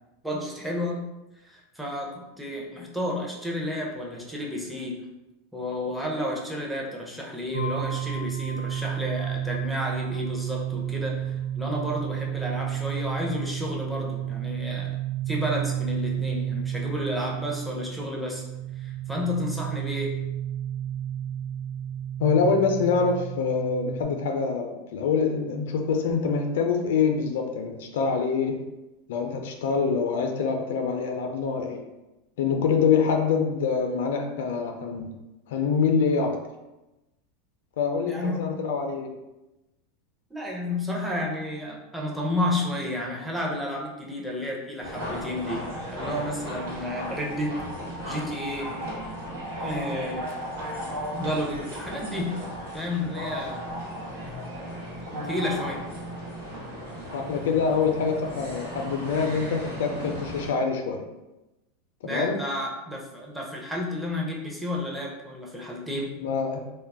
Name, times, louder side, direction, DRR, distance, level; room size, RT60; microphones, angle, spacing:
voice 1, 0.2-1.1 1.4-5.0 5.5-14.9 15.3-18.4 18.8-20.2 38.1-38.5 40.3-47.6 48.1-48.7 49.6-50.3 51.2-52.5 52.7-53.6 55.2-55.8 62.0-66.1, left 1 dB, 5° right, -3 dB, 0.6 m, -31 dB
sound 1, 7.5-24.0, right 10 dB, 60° right, 0.6 m, -31 dB
voice 2, 22.2-28.7 29.1-31.9 32.4-35.2 35.5-36.4 37.8-39.2 55.1-55.3 57.1-61.1 62.0-62.4 66.2-66.6, left 5 dB, 75° left, 4 dB, 0.3 m, -25 dB
sound 2, 44.8-60.5, equal, 85° right, 1.1 m, -35 dB
2.2 x 2.0 x 3.4 m, 1.0 s
hypercardioid pair, 110°, 0 cm